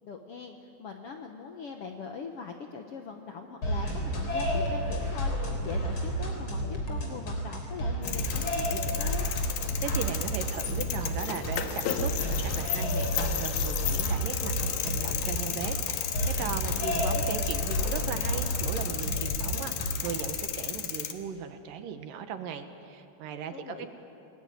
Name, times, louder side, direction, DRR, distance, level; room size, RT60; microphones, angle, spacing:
voice 1, 0.0-9.3 23.5-23.9, left 5 dB, 65° left, 4 dB, 1.5 m, -41 dB
sound 1, 3.6-20.3, equal, 35° left, 4.3 m, -31 dB
sound 2, 8.0-21.1, left 10 dB, 85° left, 3.2 m, -34 dB
voice 2, 9.8-23.9, right 8 dB, 70° right, 8 dB, 2.8 m, -37 dB
28.5 x 20.0 x 9.3 m, 2.8 s
omnidirectional pair, 4.2 m